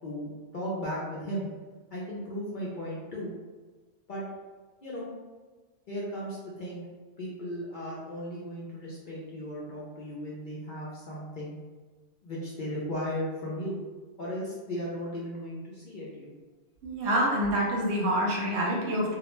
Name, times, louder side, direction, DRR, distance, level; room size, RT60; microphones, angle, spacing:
voice 1, 0.0-1.5 1.9-3.3 4.1-4.2 4.8-5.1 5.9-6.8 7.2-11.6 12.2-13.8 14.2-16.3, equal, 55° left, -6 dB, 0.6 m, -36 dB
voice 2, 16.8-19.2, equal, 70° right, -2 dB, 0.8 m, -27 dB
2.3 x 2.0 x 3.0 m, 1.3 s
omnidirectional pair, 1.2 m